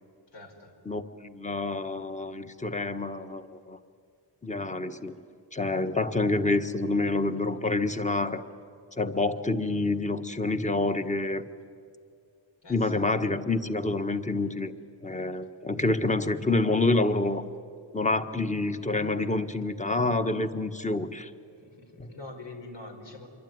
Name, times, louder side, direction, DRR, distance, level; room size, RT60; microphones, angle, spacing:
voice 1, 0.3-0.8 12.6-13.1 21.5-23.3, left 2 dB, 75° left, 3 dB, 5.3 m, -45 dB
voice 2, 0.8-3.8 4.4-5.1 5.5-8.4 8.9-11.4 12.7-14.7 15.0-17.4 17.9-21.3 22.0-22.1, left 2 dB, 15° left, 8 dB, 1.4 m, -27 dB
27.0 x 23.5 x 9.6 m, 2.3 s
wide cardioid pair, 110°, 43 cm